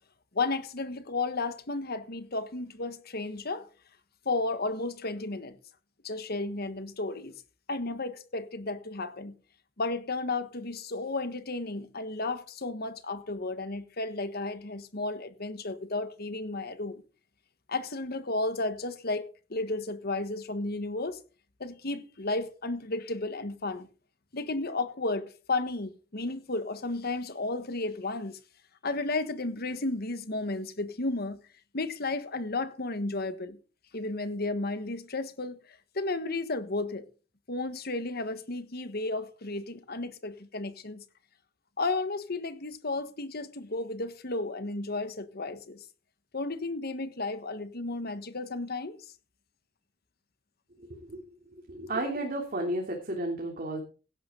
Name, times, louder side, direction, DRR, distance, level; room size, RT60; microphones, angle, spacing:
voice 1, 0.3-3.7 4.2-5.6 6.0-7.4 7.7-9.3 9.8-17.0 17.7-21.2 21.6-23.9 24.3-28.4 28.8-31.4 31.7-33.6 33.9-37.0 37.5-41.0 41.8-45.8 46.3-49.0, left 2 dB, 55° left, 1.5 m, -33 dB
voice 2, 50.9-51.2 51.7-53.8, right 1 dB, 50° right, 3.2 m, -32 dB
16.5 x 11.0 x 3.9 m
head